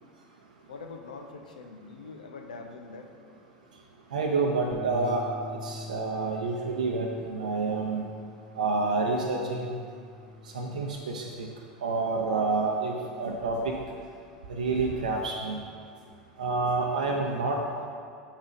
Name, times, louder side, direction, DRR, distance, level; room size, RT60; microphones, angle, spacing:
voice 1, 0.7-3.1, left 4 dB, 85° left, 5 dB, 0.6 m, -43 dB
voice 2, 4.1-5.2 5.6-8.1 8.5-9.7 10.5-11.5 11.8-13.7 14.5-15.6 16.4-17.9, right 3 dB, 85° right, 0 dB, 0.5 m, -28 dB
Bass guitar, 4.7-11.0, left 2 dB, 20° right, 0.9 m, -44 dB
6.1 x 4.1 x 5.0 m, 2.2 s
hypercardioid pair, 90°, 4 cm